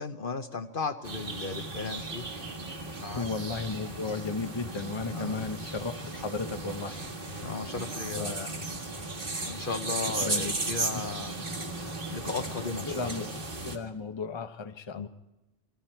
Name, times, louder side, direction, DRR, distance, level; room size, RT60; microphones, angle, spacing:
voice 1, 0.0-2.2 3.0-3.3 5.1-5.4 7.4-8.4 9.4-11.3 12.1-13.1 14.9-15.1, left 4 dB, 50° left, 8 dB, 1.0 m, -35 dB
sound 1, 1.0-13.8, right 2 dB, 50° right, 1.8 m, -36 dB
voice 2, 3.2-7.1 8.1-8.5 9.9-10.5 10.9-11.0 12.8-13.3 13.6-15.1, left 4 dB, 25° left, 9 dB, 0.8 m, -35 dB
27.5 x 23.0 x 4.5 m, 0.93 s
omnidirectional pair, 1.2 m